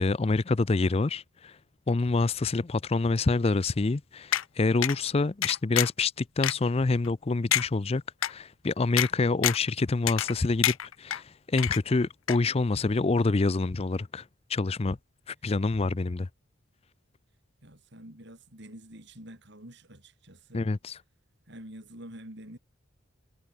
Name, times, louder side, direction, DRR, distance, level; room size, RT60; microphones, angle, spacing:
voice 1, 0.0-1.6 1.9-14.2 14.5-15.0 15.3-16.3 20.5-21.0, left 3 dB, 30° left, 0.4 m, -27 dB
sound 1, 4.3-4.4 4.8-5.0 5.4-6.0 6.4-6.5 7.0-7.1 7.5-7.7 8.2-8.3 9.0-9.1 9.4-9.7 10.1-10.4 10.6-11.2 11.6-12.0 12.3-12.4, left 12 dB, 75° left, 0.6 m, -27 dB
voice 2, 17.6-20.7 21.5-22.6, right 1 dB, 55° right, 6.0 m, -47 dB
head